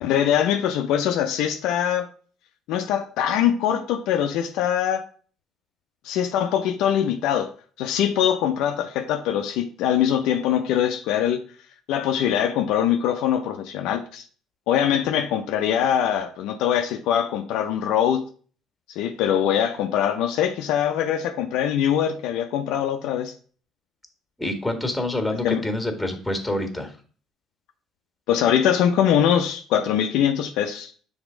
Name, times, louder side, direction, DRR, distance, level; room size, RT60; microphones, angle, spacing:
voice 1, 0.0-2.1 2.7-5.0 6.0-7.5 7.8-11.4 11.9-14.2 14.7-18.2 19.0-23.3 25.4-25.7 28.3-30.9, left 9 dB, 75° left, 0.5 m, -22 dB
voice 2, 24.4-26.9, left 1 dB, 5° left, 1.7 m, -27 dB
6.1 x 3.5 x 5.0 m
hypercardioid pair, 65°, 0 cm